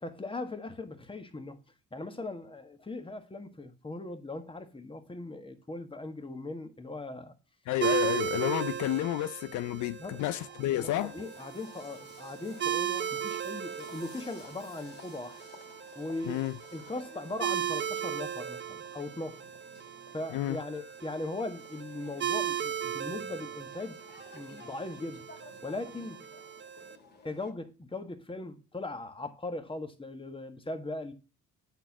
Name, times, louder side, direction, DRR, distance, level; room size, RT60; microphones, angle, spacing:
voice 1, 0.0-1.6 1.9-7.3 10.0-10.3 10.7-15.4 15.9-16.4 16.7-19.4 20.1-24.0 24.3-25.3 25.6-26.2 27.2-31.1, left 2 dB, 15° left, 1.5 m, -39 dB
voice 2, 7.7-11.2 16.3-16.5 20.3-20.6, left 14 dB, 75° left, 0.5 m, -30 dB
sound 1, 7.8-27.0, right 10 dB, 40° right, 0.7 m, -37 dB
sound 2, 10.8-27.5, left 2 dB, 35° left, 2.5 m, -54 dB
9.0 x 4.4 x 7.2 m
cardioid pair, 90°, 30 cm